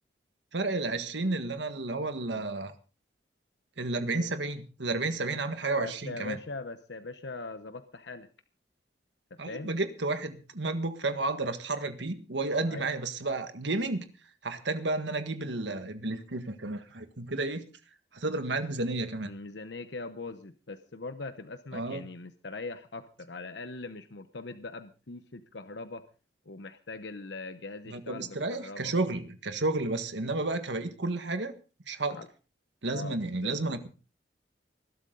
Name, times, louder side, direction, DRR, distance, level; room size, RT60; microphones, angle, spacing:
voice 1, 0.5-2.7 3.8-6.4 9.4-14.1 14.4-17.6 18.1-19.3 21.7-22.0 27.9-31.5 31.9-32.2 32.8-33.9, right 2 dB, 85° right, 8 dB, 1.7 m, -32 dB
voice 2, 5.8-8.3 9.3-9.7 12.6-12.9 19.2-26.0 26.5-29.2 32.1-32.3 32.9-33.5, left 3 dB, 75° left, 10 dB, 1.0 m, -41 dB
20.5 x 12.5 x 3.9 m, 0.35 s
head